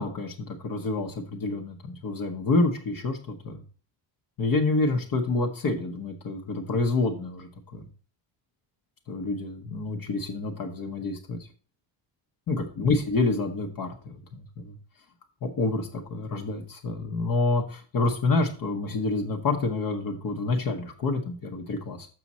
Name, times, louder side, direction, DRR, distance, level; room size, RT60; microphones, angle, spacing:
voice 1, 0.0-3.6 4.4-7.9 9.1-11.4 12.5-14.8 15.4-22.1, left 3 dB, 45° left, 3 dB, 1.0 m, -28 dB
6.7 x 6.1 x 4.2 m, 0.40 s
cardioid pair, 175°, 47 cm